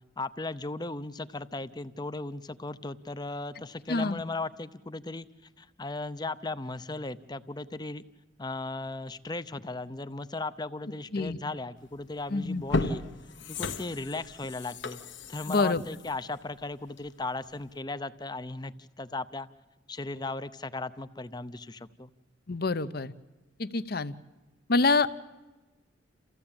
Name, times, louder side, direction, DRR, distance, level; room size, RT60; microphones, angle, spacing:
voice 1, 0.2-5.3 5.6-8.0 8.4-13.0 13.5-15.0 15.3-19.5 19.9-22.1, left 2 dB, 20° left, 14 dB, 0.6 m, -37 dB
voice 2, 3.9-4.2 11.1-11.4 12.3-12.6 15.5-15.8 22.5-23.1 23.6-24.1 24.7-25.1, left 3 dB, 50° left, 14 dB, 0.8 m, -26 dB
sound 1, 11.9-12.1 12.5-17.2 17.6-17.7, left 3 dB, 70° left, 1.3 m, -35 dB
28.5 x 15.0 x 8.8 m, 1.2 s
head